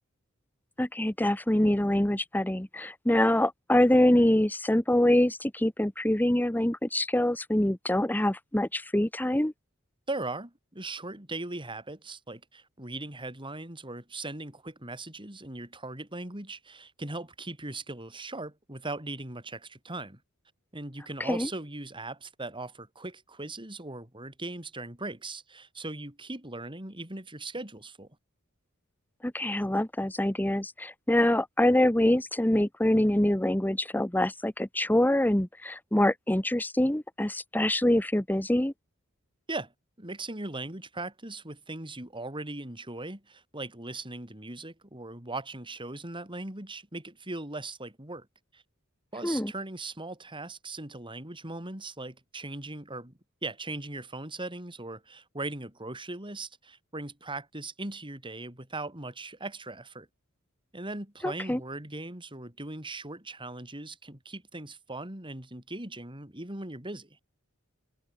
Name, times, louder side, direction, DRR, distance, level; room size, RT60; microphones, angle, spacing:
voice 1, 0.8-9.5 21.2-21.5 29.2-38.7 49.2-49.5 61.2-61.6, left 1 dB, 10° left, 1.0 m, -25 dB
voice 2, 10.1-20.2 20.7-28.1 39.5-39.7 40.0-48.3 48.5-48.6 49.1-53.1 53.4-60.1 60.7-67.2, right 2 dB, 25° right, 5.2 m, -39 dB
head